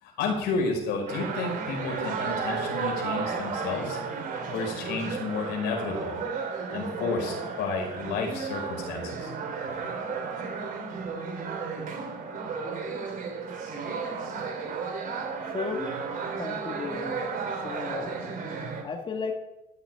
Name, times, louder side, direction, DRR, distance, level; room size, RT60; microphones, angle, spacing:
voice 1, 0.0-4.0 4.5-6.2 6.7-9.3, left 4 dB, 85° left, 1 dB, 5.4 m, -31 dB
sound 1, 1.1-18.8, right 5 dB, 55° right, 3.3 m, -33 dB
voice 2, 16.4-17.2 17.6-18.1 18.8-19.3, left 5 dB, 30° left, 2 dB, 2.0 m, -34 dB
15.0 x 6.7 x 9.3 m, 0.92 s
cardioid pair, 110°, 17 cm